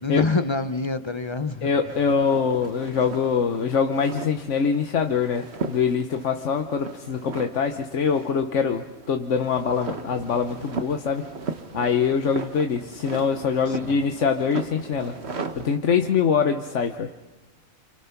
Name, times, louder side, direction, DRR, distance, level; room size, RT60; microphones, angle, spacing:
voice 1, 0.0-1.7 13.7-14.0, left 3 dB, 25° left, 10 dB, 0.7 m, -26 dB
voice 2, 1.6-11.3 11.7-15.1 15.6-17.1, left 6 dB, 65° left, 5 dB, 1.3 m, -24 dB
sound 1, 1.9-15.8, right 4 dB, 50° right, 1.5 m, -37 dB
28.0 x 27.5 x 5.9 m, 1.2 s
omnidirectional pair, 1.4 m